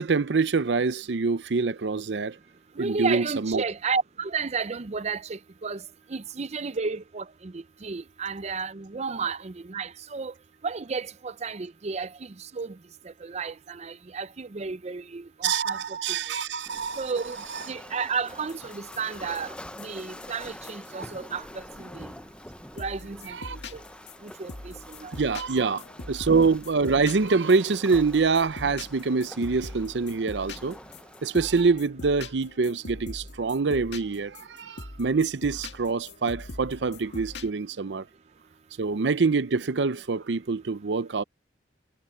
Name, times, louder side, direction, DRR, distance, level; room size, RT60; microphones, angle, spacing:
voice 1, 0.0-2.4 2.8-3.6 15.4-17.1 17.5-17.6 21.0-21.1 23.3-23.6 25.1-30.8 31.2-38.0 38.8-41.2, right 4 dB, 85° right, 0.6 m, -25 dB
voice 2, 2.8-5.8 6.1-10.3 10.6-12.8 13.2-15.8 17.0-17.4 17.7-22.1 22.8-23.4 23.7-23.8 24.2-25.1, right 5 dB, 40° right, 0.6 m, -33 dB
Waves surf, 16.7-31.6, left 1 dB, 5° left, 0.8 m, -46 dB
sound 1, 18.3-22.2 22.8-37.5, left 2 dB, 75° left, 2.2 m, -43 dB
head